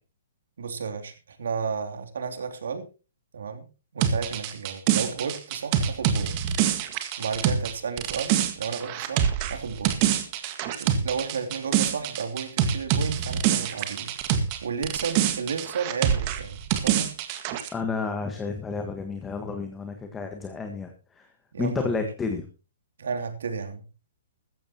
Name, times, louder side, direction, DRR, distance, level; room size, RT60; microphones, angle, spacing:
voice 1, 0.6-2.9 3.3-3.6 3.9-6.4 7.2-10.1 10.4-17.1 21.5-21.9 23.0-23.9, right 5 dB, 80° right, 7 dB, 2.8 m, -33 dB
sound 1, 4.0-14.6 14.8-17.7, right 9 dB, 35° right, 1.8 m, -25 dB
voice 2, 17.7-21.3 21.6-22.4, left 4 dB, 10° left, 5 dB, 1.5 m, -31 dB
15.5 x 14.0 x 3.0 m, 0.32 s
hypercardioid pair, 150°, 0 cm